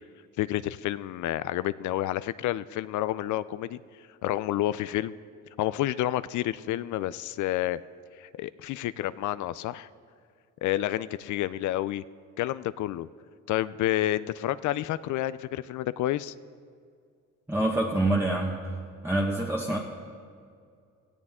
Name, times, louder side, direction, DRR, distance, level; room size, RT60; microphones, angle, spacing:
voice 1, 0.4-3.8 4.2-5.1 5.6-7.8 8.2-9.9 10.6-12.0 12.4-13.1 13.5-16.3, left 14 dB, 75° left, 16 dB, 0.4 m, -29 dB
voice 2, 17.5-18.7 19.0-19.8, right 1 dB, 10° right, -2 dB, 1.4 m, -26 dB
17.5 x 14.0 x 3.6 m, 2.2 s
cardioid pair, 90°, 30 cm